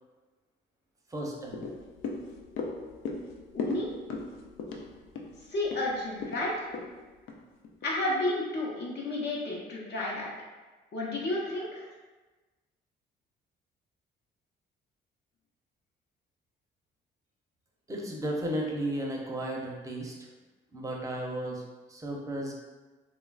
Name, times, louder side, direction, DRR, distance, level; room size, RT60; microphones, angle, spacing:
voice 1, 1.1-1.7 17.9-20.1 20.7-21.6 21.9-22.5, right 1 dB, 15° right, -1 dB, 0.5 m, -34 dB
sound 1, 1.5-8.0 8.4-8.5, left 4 dB, 85° left, 0.4 m, -39 dB
voice 2, 3.5-3.9 5.5-6.7 7.8-10.3 10.9-11.8, left 2 dB, 60° left, -4 dB, 0.8 m, -31 dB
3.0 x 2.3 x 2.3 m, 1.2 s
cardioid pair, 90°, 20 cm